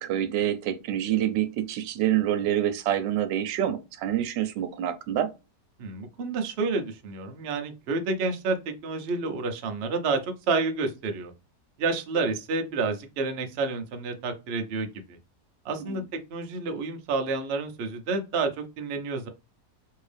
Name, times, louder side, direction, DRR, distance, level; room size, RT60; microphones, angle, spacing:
voice 1, 0.0-5.3 15.8-16.0, right 11 dB, 85° right, 1.3 m, -27 dB
voice 2, 5.8-11.3 11.8-15.2 15.6-19.3, right 3 dB, 60° right, 0.6 m, -29 dB
3.4 x 2.7 x 3.3 m
omnidirectional pair, 1.9 m